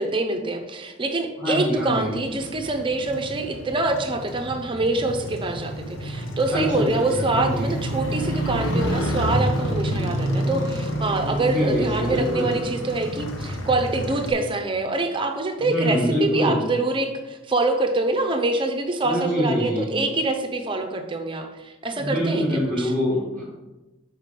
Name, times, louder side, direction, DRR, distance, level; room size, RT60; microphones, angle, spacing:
voice 1, 0.0-22.5 22.8-22.9, right 2 dB, 25° right, 5 dB, 0.6 m, -25 dB
voice 2, 1.4-2.1 6.5-7.7 11.1-12.5 15.6-16.6 19.0-19.9 22.0-23.4, equal, 10° left, -7 dB, 1.8 m, -25 dB
Motorcycle, 1.7-14.3, equal, 80° left, 1.0 m, -29 dB
4.9 x 4.5 x 5.1 m, 1.1 s
head